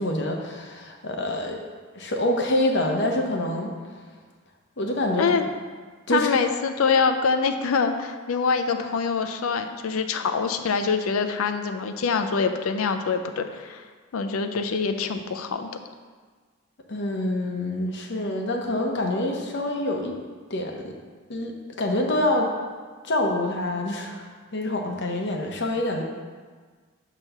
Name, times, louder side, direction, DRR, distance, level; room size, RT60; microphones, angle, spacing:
voice 1, 0.0-1.6 1.9-3.7 4.8-5.3 6.1-6.3 16.9-20.2 20.5-20.9 21.3-21.5 21.8-22.5 23.0-24.2 24.5-26.0, left 1 dB, 55° left, 1 dB, 0.8 m, -26 dB
voice 2, 6.1-13.8 14.1-15.7, left 5 dB, 85° left, 7 dB, 0.5 m, -25 dB
6.6 x 3.0 x 5.8 m, 1.5 s
head